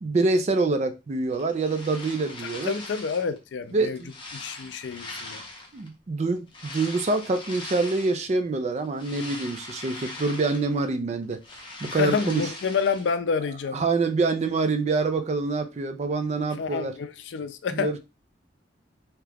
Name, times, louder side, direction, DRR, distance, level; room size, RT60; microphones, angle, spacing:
voice 1, 0.0-2.8 3.7-4.1 5.7-11.4 11.8-12.5 13.7-16.9 17.7-18.0, right 3 dB, 35° right, 0.4 m, -26 dB
sound 1, 1.3-3.4 3.8-5.9 6.5-8.3 8.7-10.9 11.2-13.1, left 2 dB, 25° left, 0.7 m, -41 dB
voice 2, 2.4-4.0 4.3-5.4 11.9-13.8 16.6-17.9, left 5 dB, 85° left, 0.4 m, -28 dB
2.8 x 2.3 x 3.4 m
head